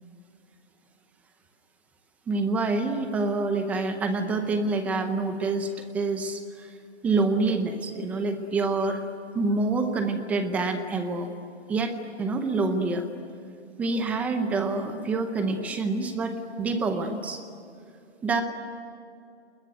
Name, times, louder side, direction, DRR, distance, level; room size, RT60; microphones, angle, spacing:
voice 1, 2.3-6.7 7.0-9.0 9.3-11.3 11.7-13.0 13.8-17.4 18.2-18.4, right 3 dB, 5° right, 7 dB, 0.7 m, -27 dB
29.0 x 21.0 x 9.2 m, 2.5 s
hypercardioid pair, 160°, 33 cm